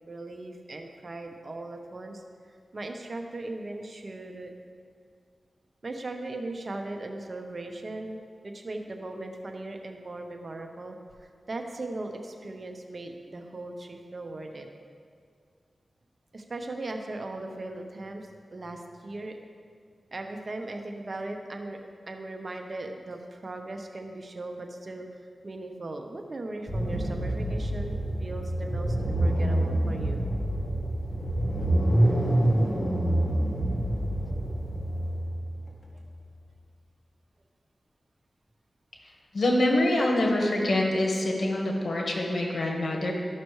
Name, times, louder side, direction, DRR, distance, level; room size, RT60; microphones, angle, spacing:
voice 1, 0.1-2.2 2.7-4.5 5.8-8.2 8.4-11.0 11.5-14.7 16.3-19.4 20.1-21.8 22.1-25.1 25.4-30.2 31.6-31.7 32.2-32.8 33.7-33.8, right 2 dB, 55° right, 4 dB, 1.0 m, -38 dB
sound 1, 26.7-36.1, right 1 dB, 20° left, 1.6 m, -27 dB
voice 2, 39.3-43.1, left 1 dB, 65° left, -1 dB, 1.5 m, -25 dB
13.0 x 5.9 x 3.2 m, 2.2 s
cardioid pair, 40°, 0 cm